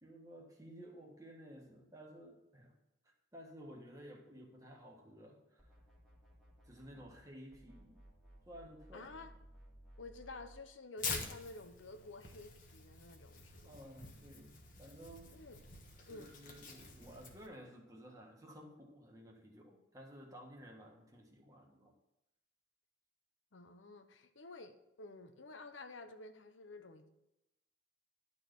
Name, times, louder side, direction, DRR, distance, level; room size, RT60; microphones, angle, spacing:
voice 1, 0.0-2.7 3.0-5.7 6.6-8.0 8.5-9.2 13.6-14.5 14.8-15.3 16.1-21.9, equal, 20° right, 0 dB, 1.6 m, -54 dB
sound 1, 5.6-7.3 7.5-10.6, right 1 dB, 5° left, 1.9 m, -60 dB
voice 2, 8.9-9.3 10.0-13.7 15.3-15.6 16.1-16.3 23.5-27.1, left 3 dB, 90° left, 8 dB, 0.9 m, -51 dB
Tearing, 11.0-17.5, left 4 dB, 45° left, 1.3 m, -47 dB
11.5 x 4.1 x 6.8 m, 0.92 s
head